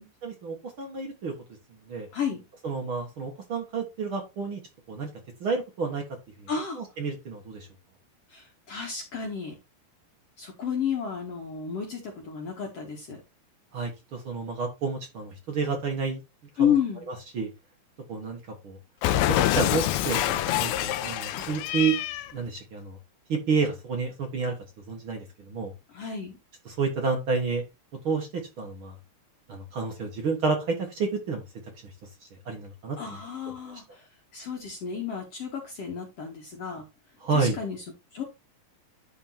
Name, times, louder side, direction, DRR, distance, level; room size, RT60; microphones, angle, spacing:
voice 1, 0.2-1.3 1.9-2.1 2.6-4.6 4.9-5.1 5.4-6.0 6.4-6.5 6.8-7.7 13.7-16.2 16.6-16.7 17.1-17.5 18.1-18.8 19.3-22.0 22.3-23.0 23.3-24.5 24.9-25.7 26.6-27.6 28.0-29.0 29.5-31.4 32.4-33.0 33.7-33.8 37.2-37.6, right 4 dB, 50° right, 2 dB, 1.6 m, -30 dB
voice 2, 6.5-6.8 8.3-9.5 10.4-13.2 16.6-17.0 21.3-21.5 25.9-26.4 33.0-33.8 34.3-36.8 37.3-37.8 38.1-38.2, left 7 dB, 55° left, 1 dB, 2.0 m, -31 dB
Cat, 19.0-22.3, left 14 dB, 85° left, 2.5 m, -26 dB
11.0 x 3.7 x 4.2 m, 0.26 s
omnidirectional pair, 4.4 m